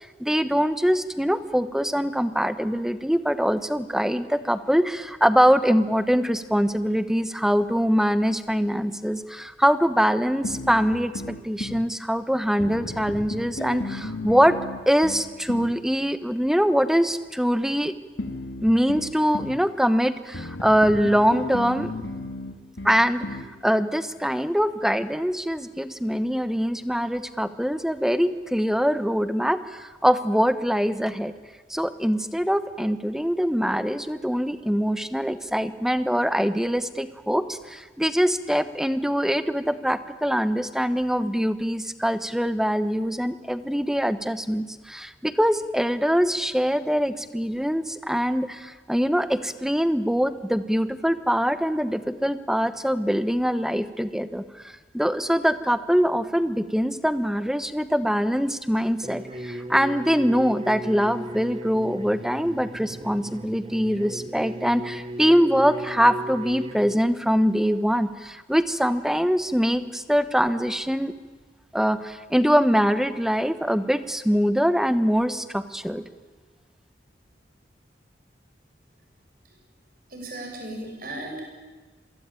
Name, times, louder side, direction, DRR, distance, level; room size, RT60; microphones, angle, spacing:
voice 1, 0.0-11.1 11.4-14.5 14.9-17.9 18.6-21.9 22.8-31.3 31.7-71.1 71.7-76.0, equal, 5° right, 12 dB, 1.1 m, -23 dB
sound 1, 10.4-11.9 12.6-15.8 18.2-19.6 20.3-23.5, left 2 dB, 90° left, 2.3 m, -34 dB
sound 2, 59.0-66.9, equal, 30° right, 1.0 m, -36 dB
voice 2, 80.1-81.5, right 1 dB, 50° right, 2 dB, 7.3 m, -36 dB
27.5 x 23.5 x 9.0 m, 1.4 s
head